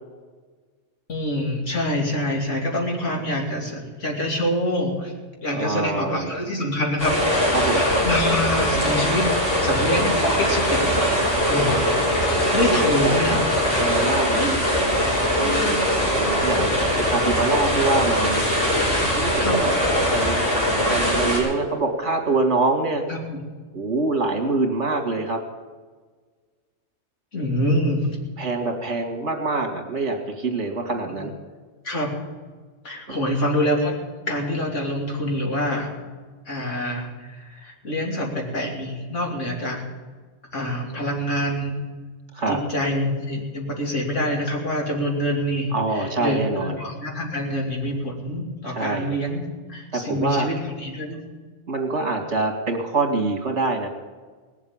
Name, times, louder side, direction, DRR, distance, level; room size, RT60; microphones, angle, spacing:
voice 1, 1.1-5.1 5.4-9.3 9.6-11.0 11.4-11.9 12.5-13.4 14.3-14.9 15.4-15.9 16.3-16.7 19.4-19.7 23.1-23.2 27.3-28.1 31.2-31.3 31.8-32.1 32.8-34.0 34.3-35.9 36.5-39.8 40.5-41.7 42.5-49.4 49.7-51.2, left 1 dB, 85° left, 0 dB, 3.2 m, -26 dB
voice 2, 5.5-6.3 7.5-7.9 12.7-14.5 15.4-15.8 16.1-18.5 19.0-20.4 20.9-23.0 23.7-25.4 28.4-31.3 33.1-33.2 42.3-42.6 45.7-46.8 48.7-49.1 49.9-50.5 51.7-53.9, right 3 dB, 70° right, 5 dB, 2.4 m, -25 dB
sound 1, 7.0-21.4, equal, 50° left, 6.3 m, -21 dB
19.0 x 7.4 x 8.7 m, 1.5 s
omnidirectional pair, 1.2 m